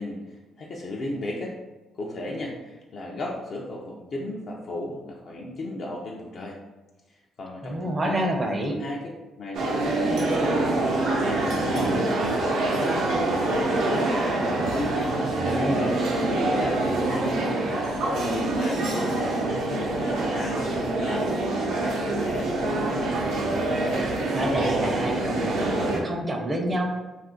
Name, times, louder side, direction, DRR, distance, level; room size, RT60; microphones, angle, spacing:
voice 1, 0.0-1.6 1.9-6.6 7.1-8.3 8.8-9.0 9.4-10.7 11.2-14.1 14.7-15.2 15.6-22.5, left 1 dB, 55° left, -2 dB, 0.4 m, -35 dB
voice 2, 7.6-8.8 15.5-15.9 24.1-26.9, right 1 dB, 30° right, 2 dB, 0.5 m, -28 dB
sound 1, 9.5-26.0, right 2 dB, 85° right, 0.6 m, -25 dB
2.4 x 2.4 x 3.7 m, 1.1 s
cardioid pair, 90°, 0 cm